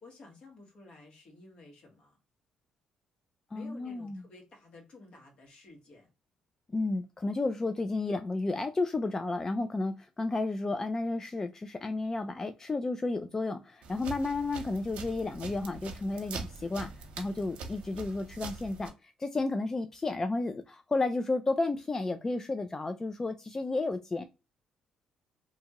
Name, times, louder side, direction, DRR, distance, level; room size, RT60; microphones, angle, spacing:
voice 1, 0.0-2.2 3.5-6.1, left 2 dB, 55° left, 1.4 m, -53 dB
voice 2, 3.5-4.2 6.7-24.2, left 3 dB, 25° left, 0.3 m, -32 dB
sound 1, 13.8-18.9, right 4 dB, 80° right, 0.7 m, -43 dB
2.7 x 2.4 x 2.8 m
supercardioid pair, 75°, 2 cm